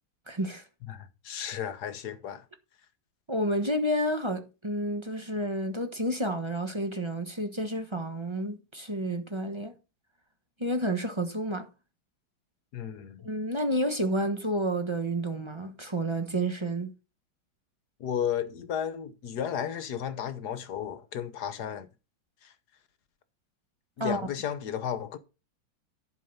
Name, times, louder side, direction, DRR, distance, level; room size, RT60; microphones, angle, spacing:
voice 1, 0.3-0.6 3.3-9.7 10.6-11.7 13.2-16.9 24.0-24.3, right 1 dB, 20° right, 0.9 m, -30 dB
voice 2, 0.9-2.4 12.7-13.3 18.0-21.9 22.4-22.5 24.0-25.2, left 9 dB, 60° left, 1.4 m, -34 dB
11.0 x 5.6 x 5.5 m
omnidirectional pair, 2.1 m